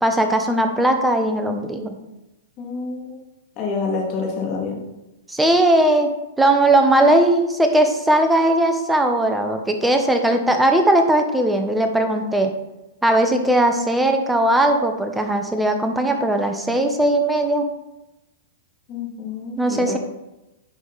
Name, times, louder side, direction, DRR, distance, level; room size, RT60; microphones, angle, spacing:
voice 1, 0.0-1.9 5.3-6.1 6.4-12.5 13.0-17.7 19.6-20.0, right 1 dB, 5° right, 5 dB, 1.0 m, -18 dB
voice 2, 2.6-3.1 3.6-4.8 18.9-20.0, left 4 dB, 35° left, -1 dB, 2.3 m, -27 dB
9.9 x 4.9 x 4.0 m, 0.96 s
hypercardioid pair, 125°, 0 cm